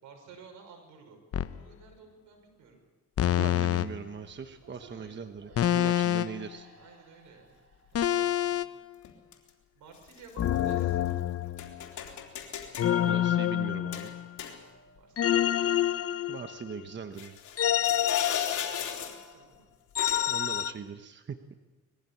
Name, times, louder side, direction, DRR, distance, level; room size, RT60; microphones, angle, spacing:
voice 1, 0.0-2.8 4.6-6.2 6.8-7.6 8.0-8.7 9.7-11.2 15.0-15.8 17.6-18.1 18.6-19.7, right 5 dB, 80° right, 4 dB, 5.9 m, -54 dB
sound 1, 1.3-1.6 3.2-3.9 5.6-6.4 7.9-8.7 10.4-11.8 12.8-14.4 15.2-16.8 17.6-19.1 20.0-20.7, left 11 dB, 50° left, 0.8 m, -27 dB
sound 2, 3.4-3.5 4.5-4.6 5.5-5.8 9.0-9.5 9.9-11.1 11.6-12.9 13.9-15.0 15.3-15.4 17.2-19.3 20.0-20.4, left 8 dB, 75° left, 3.3 m, -38 dB
voice 2, 3.4-6.7 13.0-14.1 16.3-17.4 20.3-21.5, right 6 dB, 40° right, 8 dB, 1.1 m, -40 dB
sound 3, 5.4-8.9, right 4 dB, 55° right, 3.2 m, -55 dB
21.5 x 15.5 x 8.6 m, 1.2 s
cardioid pair, 90°, 30 cm